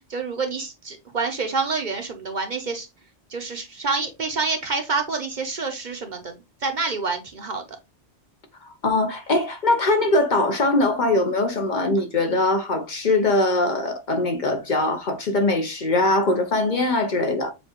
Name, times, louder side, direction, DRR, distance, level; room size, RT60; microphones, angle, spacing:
voice 1, 0.1-2.9 3.3-6.4 6.6-7.6, right 4 dB, 50° right, 0.7 m, -27 dB
voice 2, 8.6-17.5, left 2 dB, 50° left, 0.8 m, -22 dB
7.0 x 2.4 x 2.9 m
omnidirectional pair, 1.1 m